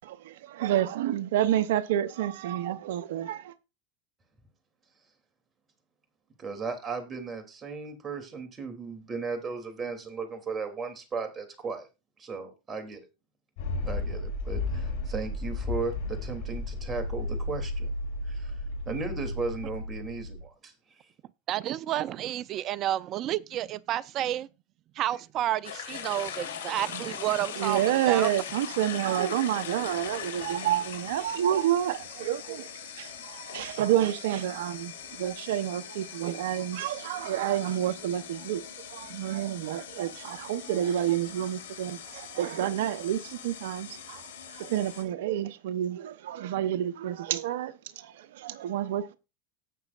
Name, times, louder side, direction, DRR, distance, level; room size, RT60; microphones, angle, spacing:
voice 1, 0.0-3.5 26.9-27.0 27.6-32.7 33.0-38.6 38.9-49.2, right 11 dB, 75° right, 0.8 m, -29 dB
voice 2, 6.4-11.9 12.2-13.1 13.8-17.9 18.2-18.5 18.9-20.7, right 4 dB, 25° right, 2.9 m, -36 dB
sound 1, 13.6-20.4, left 2 dB, 70° left, 5.8 m, -33 dB
voice 3, 21.5-24.5 25.0-27.8 28.1-28.3, right 13 dB, 45° right, 0.6 m, -30 dB
sound 2, 25.6-45.0, left 8 dB, 85° left, 2.5 m, -41 dB
18.0 x 6.3 x 2.5 m
hypercardioid pair, 95°, 0 cm